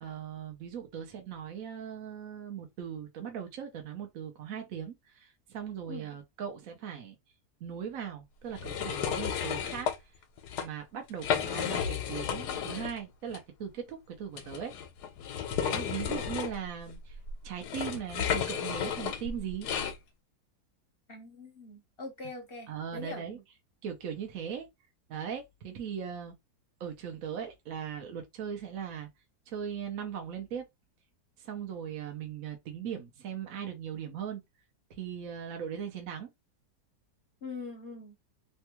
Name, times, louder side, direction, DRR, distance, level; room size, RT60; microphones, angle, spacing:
voice 1, 0.0-7.1 7.6-9.9 10.6-14.7 15.6-17.2 17.4-19.7 22.7-23.4 23.8-24.7 25.1-26.3 26.8-29.1 29.5-30.6 31.4-34.4 34.9-36.3, right 8 dB, 65° right, 1.1 m, -39 dB
sound 1, 8.6-10.0 10.4-10.7 11.1-13.0 13.3-13.4 14.3-20.0, left 8 dB, 85° left, 1.2 m, -33 dB
voice 2, 21.1-23.4 37.4-38.2, left 3 dB, 45° left, 0.8 m, -43 dB
3.2 x 2.3 x 2.9 m
omnidirectional pair, 1.7 m